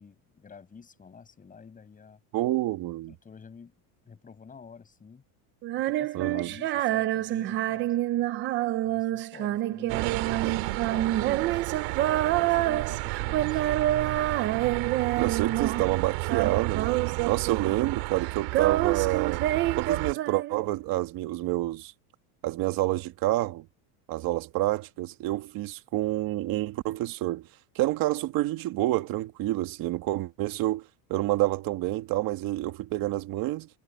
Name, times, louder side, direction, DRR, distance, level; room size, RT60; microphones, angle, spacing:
voice 1, 0.0-2.2 3.1-3.7 4.0-5.2 5.7-8.0 8.8-11.7 12.4-13.9, left 5 dB, 15° left, 6.4 m, -49 dB
voice 2, 2.3-3.2 6.1-6.5 15.2-16.9 17.2-19.5 19.8-21.9 22.4-23.7 24.1-27.5 27.8-33.7, right 17 dB, 45° right, 1.9 m, -28 dB
Female singing, 5.6-16.0 16.2-17.9 18.2-20.8, right 14 dB, 25° right, 0.4 m, -28 dB
sound 1, 9.9-20.1, right 26 dB, 65° right, 2.5 m, -32 dB
cardioid pair, 165°, 49 cm